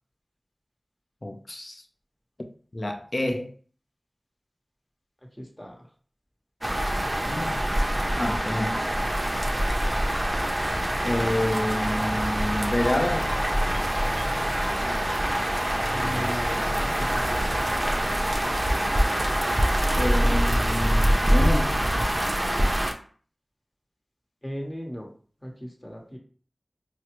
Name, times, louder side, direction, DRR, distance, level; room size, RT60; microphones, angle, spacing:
voice 1, 1.2-1.8 2.7-3.5 7.3-7.7 8.2-8.8 11.0-13.3 19.9-21.8, left 1 dB, 50° left, 0.6 m, -28 dB
voice 2, 5.4-5.9 15.9-17.7 24.4-25.1 25.4-26.2, equal, 20° left, 1.0 m, -37 dB
sound 1, 6.6-22.9, equal, 25° right, 0.6 m, -25 dB
sound 2, 7.3-7.4 7.8-7.9 8.3-9.0 9.7-11.8 12.9-14.4 14.6-16.2 16.5-16.8 17.0-17.3 17.5-18.7, right 1 dB, 85° right, 0.4 m, -41 dB
sound 3, 12.3-19.6, equal, 80° left, 0.8 m, -36 dB
4.7 x 2.0 x 3.0 m
wide cardioid pair, 40°, 0 cm